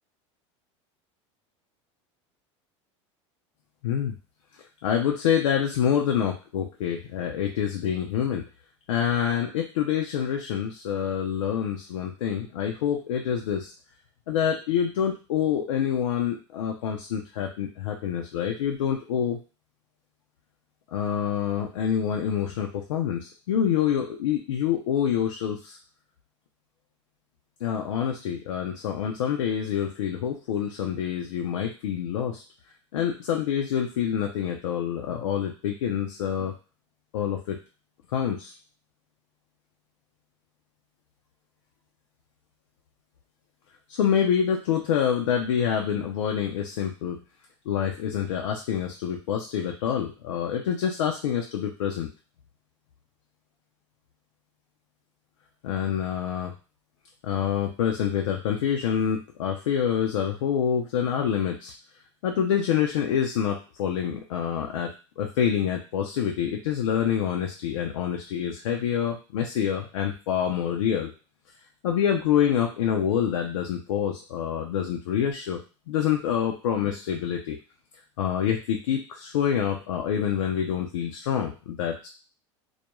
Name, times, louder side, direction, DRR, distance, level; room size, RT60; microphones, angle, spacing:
voice 1, 3.8-4.1 4.8-8.4 8.9-13.7 14.3-19.4 20.9-25.8 27.6-32.4 32.9-36.5 37.1-37.6 38.1-38.5 43.9-47.2 47.7-52.1 55.6-56.5 57.2-61.7 62.2-64.9 65.2-71.1 71.8-75.6 75.9-77.6 78.2-82.1, left 8 dB, 85° left, 2 dB, 0.4 m, -26 dB
2.2 x 2.1 x 2.9 m, 0.35 s
hypercardioid pair, 95°, 16 cm